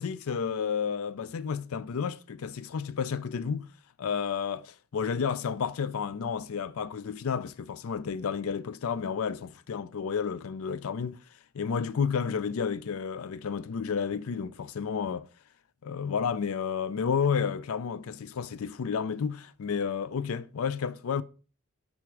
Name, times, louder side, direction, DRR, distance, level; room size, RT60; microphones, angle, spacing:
voice 1, 0.0-3.7 4.0-11.2 11.5-15.3 15.8-21.2, left 6 dB, 70° left, 0.4 m, -31 dB
10.5 x 3.6 x 4.7 m
head